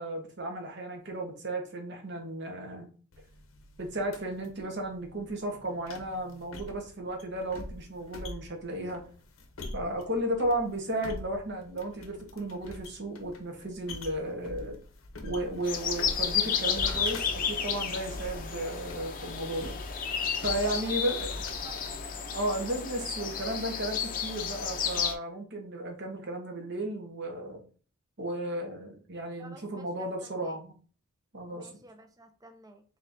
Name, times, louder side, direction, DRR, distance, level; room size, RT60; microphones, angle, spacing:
voice 1, 0.0-2.9 3.8-9.0 9.7-14.8 15.2-19.7 20.4-21.3 22.3-27.6 28.2-30.7 31.3-31.7, right 1 dB, 55° right, 1.2 m, -34 dB
sound 1, 3.1-22.2, left 2 dB, 70° left, 0.8 m, -45 dB
sound 2, 15.6-25.1, left 7 dB, 40° left, 0.6 m, -32 dB
voice 2, 29.4-30.6 31.5-32.8, right 2 dB, 15° right, 0.5 m, -51 dB
4.3 x 3.6 x 2.7 m
head